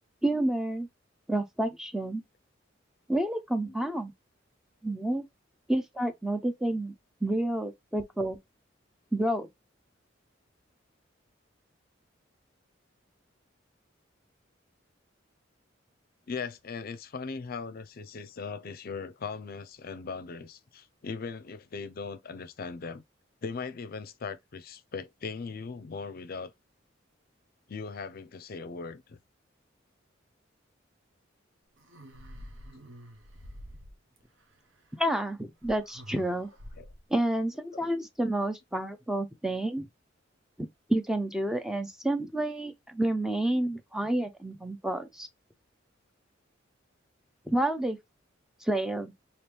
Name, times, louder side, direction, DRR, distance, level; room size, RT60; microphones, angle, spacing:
voice 1, 0.2-0.9 1.3-2.2 3.1-4.1 4.8-5.3 5.7-6.9 7.2-8.4 9.1-9.5 35.0-36.5 37.1-39.9 40.6-45.3 47.5-48.0 48.6-49.1, right 1 dB, 5° right, 0.4 m, -29 dB
voice 2, 16.3-23.0 23.4-26.5 27.7-29.2 36.8-36.9 37.7-37.9, left 5 dB, 50° left, 0.5 m, -39 dB
sound 1, 31.8-34.2 35.6-37.1, equal, 80° right, 0.8 m, -47 dB
3.1 x 2.9 x 3.3 m
head